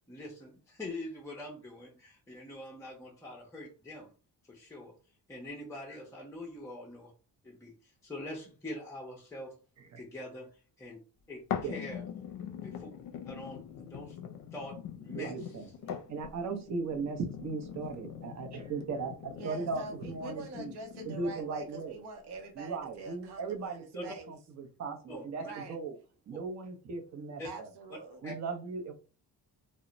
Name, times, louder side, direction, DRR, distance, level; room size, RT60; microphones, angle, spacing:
voice 1, 0.1-4.1 4.5-4.9 5.3-7.1 7.4-9.6 10.0-11.0 11.3-11.4 11.7-12.0 12.6-12.9 13.3-14.2 14.5-15.5 23.9-24.0 25.1-25.5 27.4-27.5 28.2-28.3, left 1 dB, 10° left, 0.5 m, -44 dB
sound 1, 11.5-21.5 22.1-22.2, left 8 dB, 60° left, 0.5 m, -42 dB
voice 2, 15.1-15.7 16.1-20.7 21.1-22.0 22.6-26.0 26.3-27.7 28.2-28.9, right 4 dB, 45° right, 0.7 m, -37 dB
voice 3, 19.4-24.3 25.4-25.8 27.4-28.2, right 3 dB, 85° right, 0.7 m, -45 dB
2.1 x 2.1 x 3.7 m
cardioid pair, 140°, 38 cm